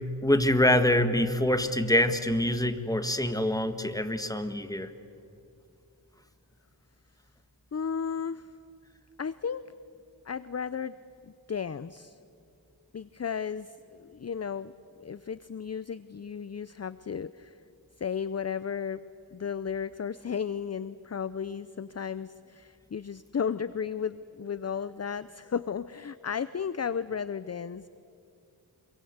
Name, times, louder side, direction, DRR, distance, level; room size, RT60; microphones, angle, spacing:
voice 1, 0.2-4.9, left 1 dB, 10° left, 9 dB, 1.5 m, -25 dB
voice 2, 7.7-8.5 9.2-9.6 10.3-10.9 11.5-12.2 12.9-14.7 15.0-17.6 18.0-19.0 19.3-27.8, left 7 dB, 35° left, 16 dB, 0.5 m, -34 dB
26.0 x 23.5 x 8.0 m, 2.5 s
wide cardioid pair, 65°, 44 cm